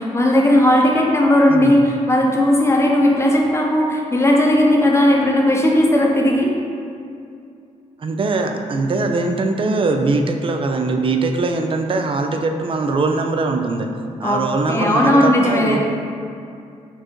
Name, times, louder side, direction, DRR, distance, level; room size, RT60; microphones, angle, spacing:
voice 1, 0.0-6.5 14.2-15.8, left 1 dB, 20° left, -1 dB, 0.8 m, -16 dB
voice 2, 8.0-13.9 14.2-15.8, right 3 dB, 45° right, 4 dB, 0.4 m, -21 dB
4.4 x 2.5 x 4.5 m, 2.5 s
cardioid pair, 75°, 13 cm